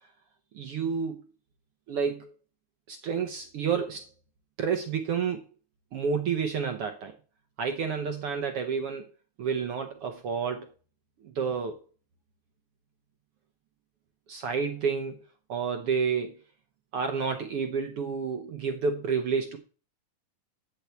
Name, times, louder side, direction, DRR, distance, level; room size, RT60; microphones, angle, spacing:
voice 1, 0.5-1.2 1.9-2.3 2.9-4.0 4.6-5.4 5.9-7.1 7.6-9.1 9.4-10.7 11.3-11.8 14.3-15.2 15.5-16.4 16.9-19.6, right 6 dB, 80° right, 5 dB, 1.3 m, -29 dB
11.5 x 4.5 x 8.2 m, 0.38 s
omnidirectional pair, 3.9 m